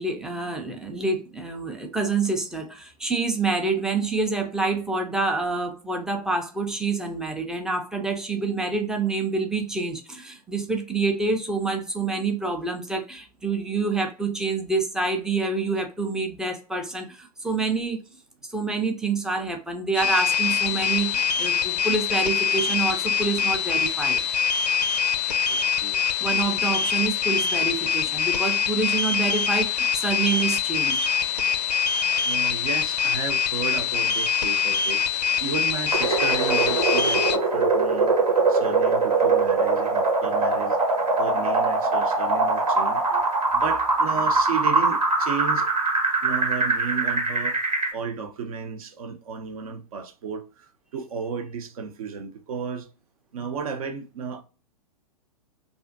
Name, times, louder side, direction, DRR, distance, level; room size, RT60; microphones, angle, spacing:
voice 1, 0.0-18.0 18.5-24.2 26.2-31.1 43.1-43.2, right 3 dB, 5° right, 0.4 m, -27 dB
sound 1, 19.9-37.4, left 7 dB, 85° left, 0.4 m, -24 dB
voice 2, 25.5-26.0 32.2-38.1 38.5-40.8 41.2-43.0 43.5-45.7 46.2-47.6 47.9-52.9 53.3-54.4, right 6 dB, 60° right, 0.6 m, -33 dB
sound 2, 35.9-47.9, right 3 dB, 85° right, 1.1 m, -22 dB
2.5 x 2.4 x 2.5 m
hypercardioid pair, 115°, 20 cm